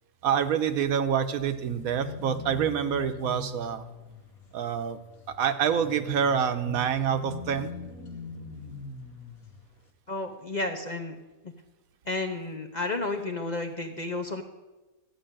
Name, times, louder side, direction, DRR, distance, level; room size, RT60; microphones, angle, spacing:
voice 1, 0.2-3.8 4.5-5.0 5.3-7.7, right 8 dB, 80° right, 9 dB, 1.2 m, -27 dB
sound 1, 1.3-9.7, left 4 dB, 85° left, 1.7 m, -42 dB
voice 2, 10.1-11.1 11.4-11.5 12.1-14.4, left 2 dB, 40° left, 5 dB, 0.6 m, -32 dB
13.0 x 5.3 x 8.8 m, 1.1 s
omnidirectional pair, 1.5 m